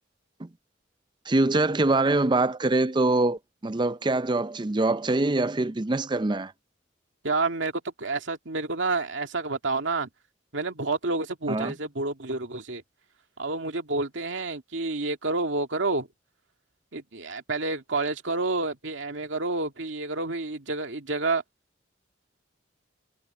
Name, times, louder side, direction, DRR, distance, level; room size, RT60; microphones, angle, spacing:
voice 1, 1.3-6.5 11.5-11.7, right 2 dB, 25° right, 0.5 m, -24 dB
voice 2, 7.2-10.1 10.5-12.8 13.4-16.1 16.9-21.4, right 3 dB, 75° right, 2.2 m, -29 dB
head